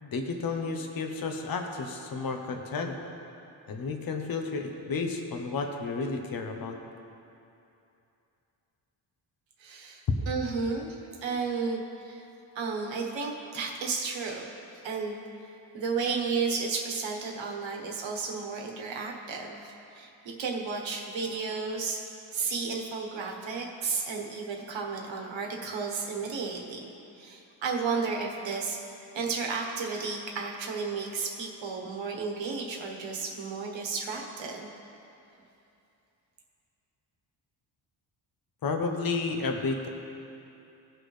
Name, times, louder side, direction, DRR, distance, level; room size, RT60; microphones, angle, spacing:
voice 1, 0.0-3.0 3.7-6.8 38.6-39.9, left 4 dB, 50° left, 4 dB, 0.9 m, -32 dB
voice 2, 9.6-12.3 12.5-14.5 14.8-15.2 15.7-20.1 20.4-22.0 22.3-28.8 29.1-34.7, right 4 dB, 75° right, 0 dB, 1.4 m, -33 dB
17.0 x 6.1 x 3.3 m, 2.7 s
wide cardioid pair, 160°, 45 cm